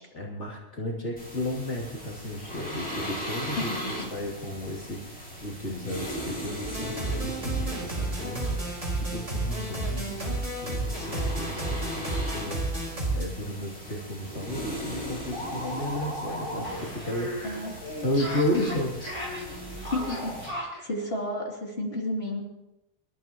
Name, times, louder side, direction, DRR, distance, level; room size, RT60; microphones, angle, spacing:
voice 1, 0.1-3.7 4.1-12.9 13.1-17.6 18.0-19.0, left 1 dB, 75° left, -3 dB, 3.4 m, -33 dB
sound 1, 1.2-20.5, equal, 5° left, 5.6 m, -39 dB
sound 2, 6.6-13.2, right 2 dB, 85° right, 4.9 m, -31 dB
sound 3, 13.9-14.0 14.3-14.4 14.7-20.8, left 1 dB, 25° left, 4.9 m, -36 dB
voice 2, 17.4-17.8 19.8-22.4, left 1 dB, 60° left, -2 dB, 3.4 m, -32 dB
28.0 x 13.0 x 3.1 m, 0.94 s
omnidirectional pair, 1.2 m